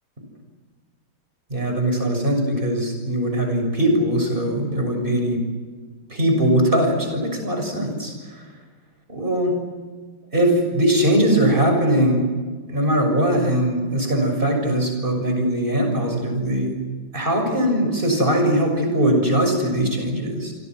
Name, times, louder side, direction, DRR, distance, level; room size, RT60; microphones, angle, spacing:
voice 1, 1.5-5.4 6.1-8.5 9.1-9.6 10.3-12.3 12.7-16.7 17.1-20.5, right 1 dB, 30° right, 3 dB, 6.9 m, -21 dB
29.0 x 24.5 x 6.3 m, 1.4 s
omnidirectional pair, 1.8 m